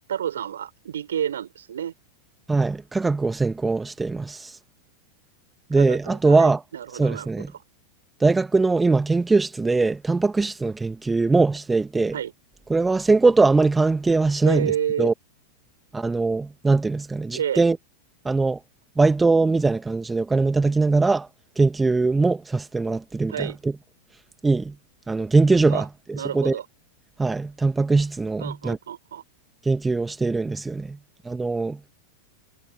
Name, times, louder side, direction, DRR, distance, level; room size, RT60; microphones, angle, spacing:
voice 1, 0.1-1.9 5.7-7.3 12.1-12.3 14.4-15.1 17.3-17.6 23.3-23.6 25.7-25.8 26.2-26.7 28.4-29.2, right 9 dB, 65° right, 5.9 m, -29 dB
voice 2, 2.5-4.6 5.7-6.6 6.9-7.5 8.2-12.2 12.7-15.1 15.9-17.8 18.2-18.6 19.0-21.3 21.6-23.7 24.4-24.8 25.1-26.6 27.2-28.8 29.6-31.0 31.3-31.8, right 3 dB, 10° right, 1.8 m, -21 dB
figure-of-eight pair, 90°, 0 cm